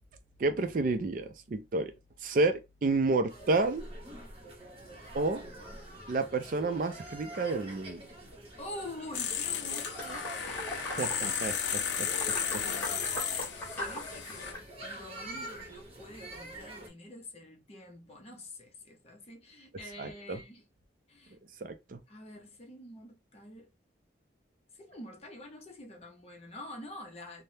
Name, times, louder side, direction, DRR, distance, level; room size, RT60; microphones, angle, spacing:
voice 1, 0.4-1.9 2.2-3.9 5.1-5.5 6.1-8.0 10.8-12.1 12.5-12.6 20.0-20.4 21.6-22.0, right 3 dB, 50° right, 0.4 m, -30 dB
sound 1, 3.3-16.9, right 1 dB, 30° right, 0.9 m, -46 dB
voice 2, 8.6-11.2 12.6-13.0 13.6-14.5 14.8-20.7 21.1-21.4 22.1-23.7 24.7-27.4, left 1 dB, 35° left, 0.7 m, -47 dB
sound 2, 9.1-14.5, left 8 dB, 70° left, 0.4 m, -34 dB
sound 3, 9.4-14.6, left 1 dB, 10° left, 1.5 m, -41 dB
3.3 x 2.1 x 2.7 m
head